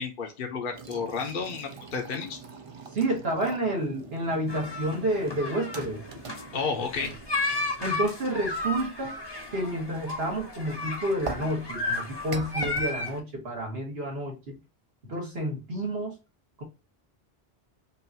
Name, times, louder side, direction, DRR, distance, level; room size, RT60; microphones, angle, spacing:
voice 1, 0.0-2.4 6.5-7.1, left 5 dB, 55° left, 0.9 m, -32 dB
sound 1, 0.7-8.4 11.2-12.9, right 5 dB, 40° right, 0.5 m, -42 dB
voice 2, 2.9-6.0 7.0-7.1 7.8-9.1 9.5-14.6 15.1-16.2 16.6-16.7, right 1 dB, 70° right, 2.0 m, -30 dB
sound 2, 4.5-13.2, left 2 dB, 25° left, 0.9 m, -34 dB
5.4 x 2.5 x 2.7 m
omnidirectional pair, 1.1 m